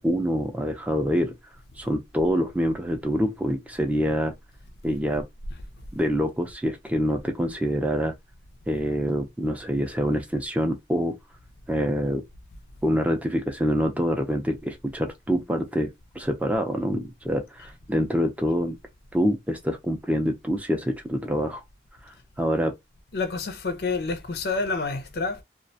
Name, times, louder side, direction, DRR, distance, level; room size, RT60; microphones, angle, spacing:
voice 1, 0.0-1.3 1.8-4.3 4.8-5.3 5.9-8.1 8.7-11.1 11.7-12.2 12.8-18.8 19.1-21.6 22.0-22.7, equal, 10° right, 0.4 m, -26 dB
voice 2, 23.1-25.4, left 3 dB, 65° left, 0.5 m, -28 dB
2.3 x 2.1 x 2.6 m
head